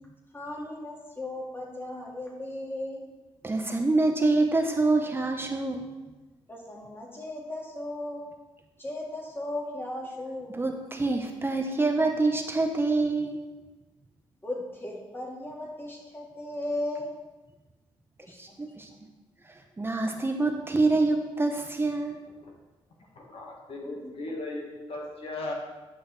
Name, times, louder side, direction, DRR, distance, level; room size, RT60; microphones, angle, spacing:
voice 1, 0.3-3.1 6.5-8.3 8.8-10.5 14.4-17.1 18.2-18.4, left 1 dB, 20° left, -2 dB, 2.1 m, -36 dB
voice 2, 3.4-5.9 10.5-13.4 18.4-18.9 19.8-22.2, right 3 dB, 20° right, 3 dB, 0.8 m, -26 dB
voice 3, 23.1-25.5, left 2 dB, 65° left, -1 dB, 1.7 m, -37 dB
10.0 x 6.3 x 3.4 m, 1.1 s
cardioid pair, 75°, 10 cm